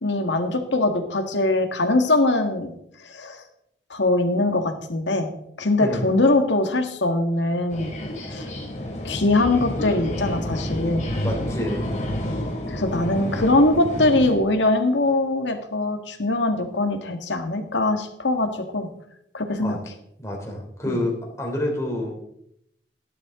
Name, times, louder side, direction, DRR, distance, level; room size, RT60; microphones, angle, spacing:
voice 1, 0.0-2.7 3.0-3.4 3.9-5.3 5.6-7.9 8.3-8.5 9.0-11.0 12.7-18.9 19.3-19.8 20.9-21.0, left 2 dB, 75° left, 6 dB, 1.9 m, -22 dB
sound 1, 7.7-14.4, left 1 dB, 40° left, 3.2 m, -29 dB
voice 2, 11.2-11.9 19.6-19.8 20.2-22.2, left 1 dB, 15° left, 0 dB, 3.4 m, -28 dB
17.5 x 11.5 x 3.8 m, 0.76 s
head